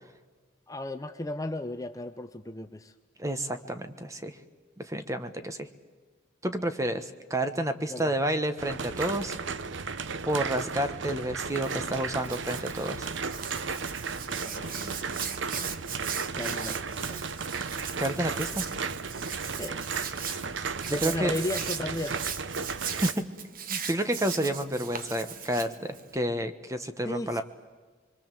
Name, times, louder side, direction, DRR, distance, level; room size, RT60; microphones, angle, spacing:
voice 1, 0.7-2.9 7.9-8.1 14.4-15.4 16.3-17.2 19.6-19.8 20.9-22.2 27.0-27.4, left 1 dB, 15° left, 8 dB, 0.7 m, -35 dB
voice 2, 3.2-4.3 4.8-5.7 6.4-9.4 10.3-13.1 18.0-18.7 20.9-21.3 23.0-23.2 23.7-27.4, right 1 dB, 15° right, 9 dB, 1.2 m, -30 dB
sound 1, 8.6-23.1, right 5 dB, 70° right, 0.8 m, -35 dB
Hands, 11.5-26.2, right 7 dB, 45° right, 1.2 m, -38 dB
25.5 x 23.5 x 7.6 m, 1.4 s
head